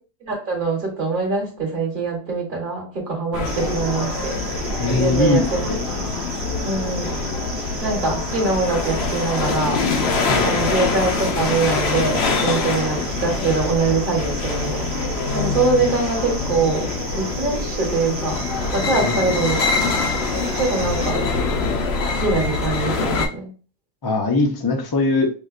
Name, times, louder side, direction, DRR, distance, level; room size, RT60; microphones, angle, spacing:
voice 1, 0.2-4.4 4.9-5.7 6.6-7.2 7.8-9.9 10.4-14.9 15.3-16.9 17.1-18.4 18.7-19.9 20.6-21.2 22.2-23.5, right 3 dB, 50° right, 0 dB, 1.2 m, -23 dB
sound 1, 3.3-23.3, left 4 dB, 70° left, 0.9 m, -24 dB
sound 2, 3.4-21.1, right 3 dB, 75° right, 1.0 m, -34 dB
voice 2, 4.8-5.4 5.7-5.8 10.3-10.7 19.0-19.1 24.0-25.3, left 2 dB, 35° left, 2 dB, 0.4 m, -21 dB
4.8 x 2.2 x 2.4 m, 0.37 s
omnidirectional pair, 1.2 m